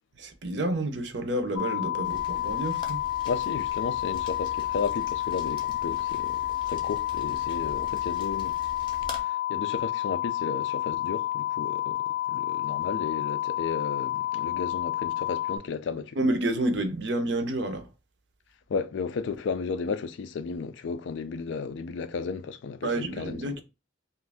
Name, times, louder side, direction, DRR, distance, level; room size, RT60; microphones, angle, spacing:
voice 1, 0.2-3.0 16.2-17.9 22.8-23.6, right 1 dB, 65° right, 0.6 m, -29 dB
sound 1, 1.6-15.6, left 13 dB, 25° right, 0.6 m, -30 dB
Rain, 2.0-9.2, left 1 dB, 25° left, 0.6 m, -44 dB
voice 2, 3.2-8.6 9.2-16.2 18.7-23.6, left 5 dB, 75° left, 0.3 m, -34 dB
2.7 x 2.5 x 3.3 m
head